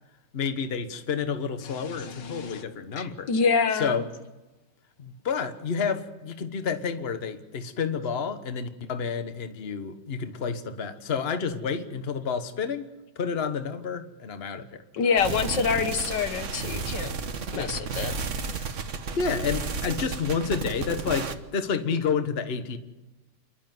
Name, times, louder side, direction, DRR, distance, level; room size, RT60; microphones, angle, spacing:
voice 1, 0.3-3.3 3.7-4.1 5.0-14.8 17.5-17.7 19.1-22.8, left 6 dB, 40° left, 8 dB, 1.4 m, -30 dB
voice 2, 1.6-2.6 3.0-4.0 14.9-17.1 17.5-18.1, left 5 dB, 80° left, 8 dB, 2.0 m, -27 dB
sound 1, 15.2-21.4, right 4 dB, 50° right, 1.4 m, -33 dB
28.5 x 11.5 x 9.4 m, 1.1 s
omnidirectional pair, 1.9 m